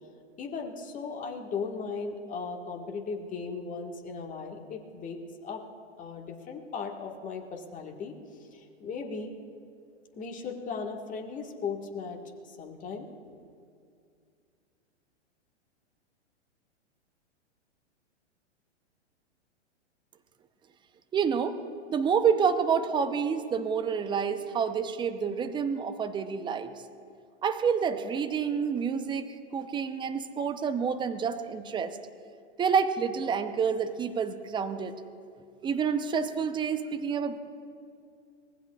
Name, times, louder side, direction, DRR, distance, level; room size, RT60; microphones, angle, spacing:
voice 1, 0.4-5.6 6.0-8.1 8.5-9.3 10.1-12.2 12.5-13.4, left 5 dB, 20° left, 1 dB, 1.7 m, -37 dB
voice 2, 21.1-21.6 21.9-26.7 27.4-29.3 29.5-32.0 32.6-34.9 35.6-37.4, right 6 dB, 15° right, 9 dB, 0.7 m, -28 dB
24.5 x 19.5 x 2.4 m, 2.3 s
hypercardioid pair, 115°, 35 cm